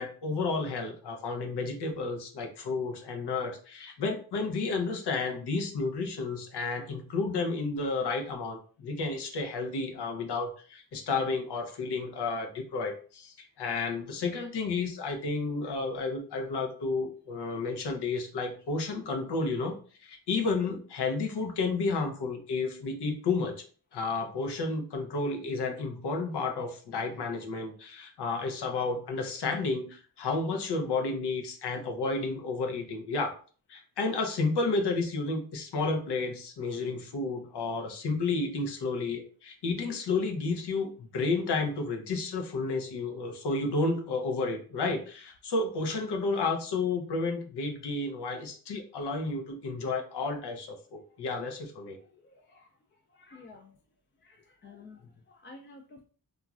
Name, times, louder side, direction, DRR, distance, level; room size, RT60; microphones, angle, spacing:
voice 1, 0.0-23.6 23.9-33.3 33.7-52.0, left 3 dB, 85° left, 4 dB, 0.7 m, -31 dB
voice 2, 52.0-53.8 54.2-56.0, left 3 dB, 30° left, 2 dB, 0.4 m, -53 dB
3.0 x 2.4 x 2.4 m, 0.41 s
cardioid pair, 70°, 39 cm